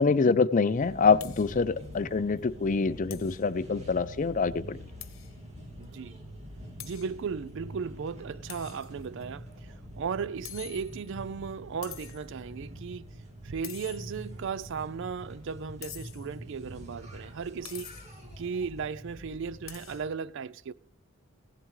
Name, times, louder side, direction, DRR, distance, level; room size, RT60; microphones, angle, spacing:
voice 1, 0.0-4.8, left 4 dB, 40° left, 0.5 m, -25 dB
sound 1, 0.7-20.1, equal, 35° right, 2.3 m, -46 dB
sound 2, 1.2-1.6 1.9-2.0 2.4-2.5 3.1-3.5 5.0-5.4 5.8-5.9 6.8-7.2 8.5-9.2 10.5-11.2 11.8-12.4 13.6-14.4 15.8-16.4 17.7-18.2 19.7-20.0, left 13 dB, 85° left, 1.0 m, -46 dB
voice 2, 5.8-6.2 6.8-13.2 13.4-17.9 18.4-20.7, right 6 dB, 65° right, 0.4 m, -36 dB
16.0 x 11.5 x 3.2 m
head